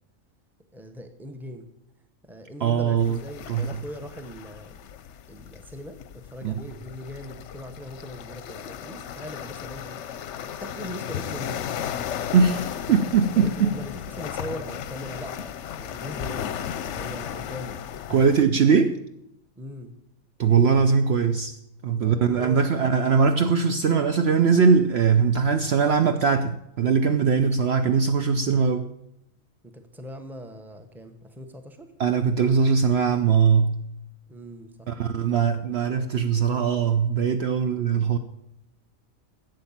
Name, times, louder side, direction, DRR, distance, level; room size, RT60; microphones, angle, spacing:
voice 1, 0.7-1.7 2.2-4.8 5.3-10.0 10.6-11.7 13.3-16.5 16.8-17.8 19.6-19.9 22.0-23.2 29.6-31.9 34.3-36.1, equal, ahead, 0.9 m, -40 dB
voice 2, 2.6-3.2 3.5-3.7 6.4-6.6 12.3-13.7 18.1-19.0 20.4-21.5 21.8-28.9 32.0-33.8 34.9-38.2, right 6 dB, 60° right, 0.8 m, -21 dB
sound 1, 3.0-18.4, left 9 dB, 65° left, 0.9 m, -35 dB
11.5 x 7.8 x 7.2 m
omnidirectional pair, 1.4 m